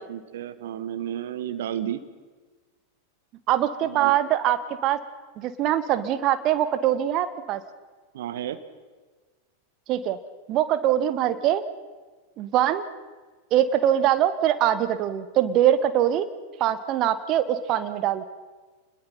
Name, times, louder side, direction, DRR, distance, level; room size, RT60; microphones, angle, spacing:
voice 1, 0.0-2.0 3.8-4.1 8.1-8.6, right 10 dB, 55° right, 11 dB, 1.4 m, -32 dB
voice 2, 3.5-5.0 5.4-7.6 9.9-10.2 10.5-11.6 12.4-12.8 13.5-16.3 16.6-18.2, right 11 dB, 35° right, 12 dB, 1.5 m, -23 dB
27.5 x 21.0 x 5.8 m, 1.4 s
figure-of-eight pair, 90°, 0 cm